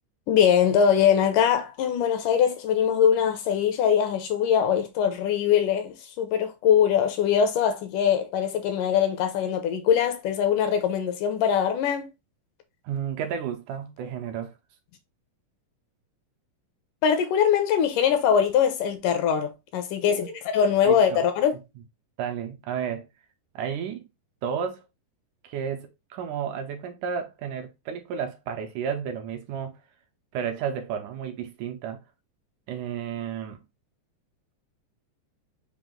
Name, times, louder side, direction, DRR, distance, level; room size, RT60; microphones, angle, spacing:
voice 1, 0.3-12.1 17.0-21.6, left 8 dB, 80° left, 2.2 m, -22 dB
voice 2, 12.8-14.5 20.1-20.4 20.9-21.2 22.2-23.1 23.6-24.1 24.4-24.9 25.4-29.8 30.3-32.0 32.7-33.6, right 8 dB, 80° right, 2.0 m, -32 dB
5.9 x 2.4 x 3.7 m
omnidirectional pair, 3.9 m